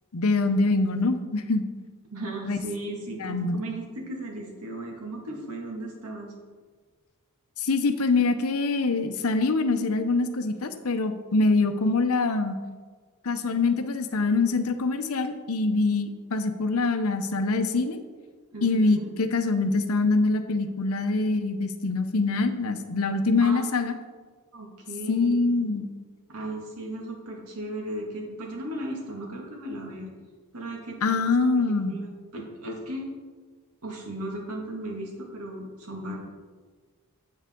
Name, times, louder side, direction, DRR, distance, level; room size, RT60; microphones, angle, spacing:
voice 1, 0.1-1.6 2.5-2.6 3.2-3.6 7.6-12.6 13.2-18.0 18.6-23.9 25.1-25.9 31.0-32.0, left 3 dB, 70° left, 9 dB, 0.7 m, -24 dB
voice 2, 2.1-6.3 18.5-19.1 23.4-23.6 24.5-25.7 26.3-30.1 30.5-31.2 31.6-33.1 33.8-36.2, right 1 dB, 80° right, -1 dB, 2.0 m, -36 dB
8.3 x 7.9 x 3.7 m, 1.5 s
head